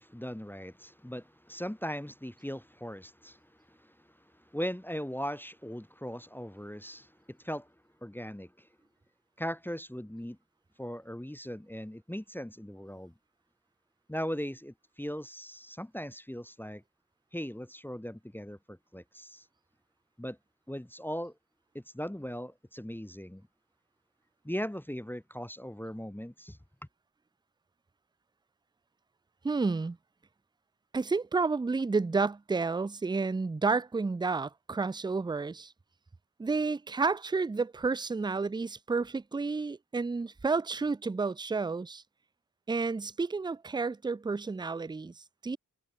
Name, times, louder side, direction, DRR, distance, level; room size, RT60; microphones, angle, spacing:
voice 1, 0.0-4.1 4.3-7.7 8.0-8.7 9.4-10.4 10.8-13.1 14.1-16.8 17.3-19.5 20.2-20.4 20.7-21.3 21.7-23.5 24.4-26.6, equal, 5° left, 1.6 m, -39 dB
voice 2, 29.4-30.0 30.9-35.7 36.4-42.0 42.7-45.6, right 4 dB, 15° right, 0.4 m, -31 dB
cardioid pair, 60°, 32 cm